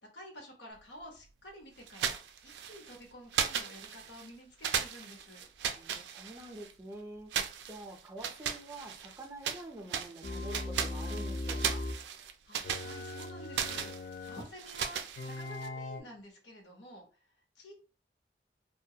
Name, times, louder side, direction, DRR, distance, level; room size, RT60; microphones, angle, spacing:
voice 1, 0.1-5.5 12.4-17.0 17.6-17.7, equal, 90° left, 1 dB, 0.9 m, -50 dB
sound 1, 1.9-3.0 3.3-4.3 4.6-6.7 7.3-9.6 9.9-15.7, right 8 dB, 80° right, 0.3 m, -37 dB
voice 2, 5.7-7.3 7.7-11.8, right 1 dB, 15° right, 1 dB, 0.4 m, -46 dB
sound 2, 10.2-12.0 12.6-14.5 15.2-16.0, left 2 dB, 55° left, 0.4 m, -39 dB
2.4 x 2.2 x 2.7 m, 0.35 s
head